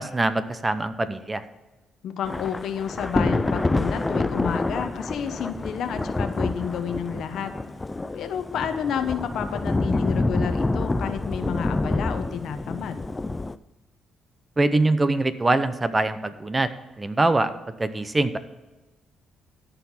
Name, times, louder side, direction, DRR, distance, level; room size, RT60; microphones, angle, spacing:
voice 1, 0.0-1.4 14.6-16.7 17.0-17.5 17.8-18.4, right 2 dB, 20° right, 12 dB, 0.7 m, -23 dB
voice 2, 2.0-7.5 8.1-13.0, left 8 dB, 75° left, 9 dB, 1.0 m, -30 dB
Thunder / Rain, 2.2-13.6, left 2 dB, 20° left, 0.4 m, -27 dB
13.5 x 4.7 x 5.5 m, 1.1 s
cardioid pair, 90°, 0 cm